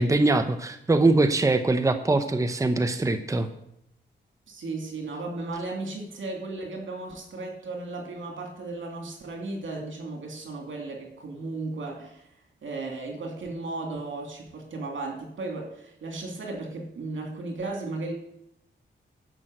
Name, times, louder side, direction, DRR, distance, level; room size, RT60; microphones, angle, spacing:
voice 1, 0.0-3.5, right 2 dB, 15° right, 8 dB, 0.8 m, -22 dB
voice 2, 4.5-12.2 12.6-18.1, right 3 dB, 80° right, 2 dB, 2.6 m, -35 dB
11.0 x 5.7 x 7.8 m, 0.78 s
wide cardioid pair, 95°, 20 cm